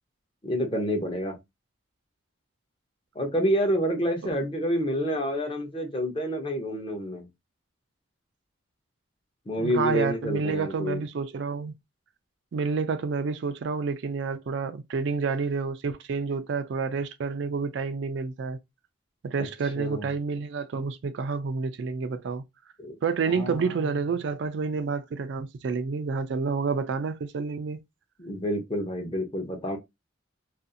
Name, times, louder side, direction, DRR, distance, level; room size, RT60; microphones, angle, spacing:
voice 1, 0.4-1.4 3.2-7.3 9.5-11.0 19.8-20.1 22.8-22.9 23.3-23.6 28.2-29.8, equal, 25° left, 0.6 m, -28 dB
voice 2, 9.6-11.7 12.5-18.6 19.2-22.4 23.0-27.8, right 4 dB, 60° right, 0.3 m, -29 dB
2.5 x 2.4 x 2.6 m
head